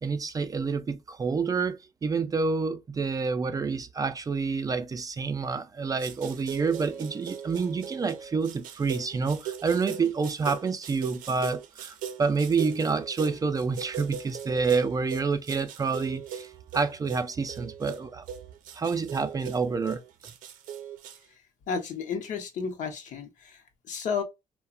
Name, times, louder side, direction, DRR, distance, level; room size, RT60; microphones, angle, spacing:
voice 1, 0.0-18.2 18.8-20.0, right 4 dB, 25° right, 0.3 m, -28 dB
sound 1, 6.0-21.2, right 8 dB, 85° right, 0.5 m, -39 dB
voice 2, 21.3-24.2, left 6 dB, 70° left, 0.7 m, -33 dB
2.7 x 2.1 x 2.4 m
cardioid pair, 95°, 14 cm